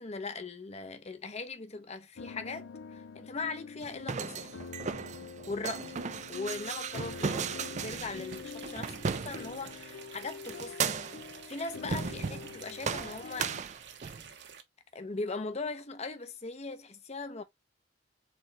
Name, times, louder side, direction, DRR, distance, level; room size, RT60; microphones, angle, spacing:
voice 1, 0.0-4.6 5.5-5.9 6.3-11.1 11.5-13.5 14.9-17.4, left 3 dB, 35° left, 0.8 m, -40 dB
sound 1, 2.2-13.6, left 5 dB, 90° left, 0.5 m, -46 dB
sound 2, 3.8-9.8 10.5-11.3 11.8-12.5 12.8-14.3, right 5 dB, 40° right, 0.4 m, -36 dB
sound 3, 5.7-14.6, right 7 dB, 65° right, 1.0 m, -50 dB
4.4 x 3.8 x 3.2 m
head